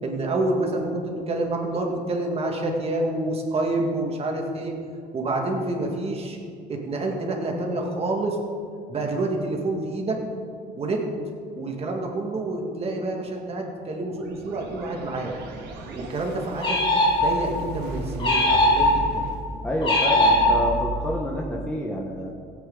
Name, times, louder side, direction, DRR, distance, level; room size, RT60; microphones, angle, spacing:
voice 1, 0.0-4.8 5.1-6.4 6.7-8.4 8.9-10.2 10.8-11.1 11.5-15.4 16.0-16.9 17.2-19.2, right 2 dB, 35° right, 1 dB, 2.1 m, -28 dB
sound 1, 14.0-20.9, right 3 dB, 80° right, 1.8 m, -36 dB
sound 2, 16.6-17.6 18.2-19.2 19.8-21.0, left 1 dB, 30° left, 3.1 m, -20 dB
voice 2, 19.6-22.3, left 1 dB, 5° left, -3 dB, 1.3 m, -28 dB
16.5 x 8.7 x 3.9 m, 2.3 s
cardioid pair, 110°, 17 cm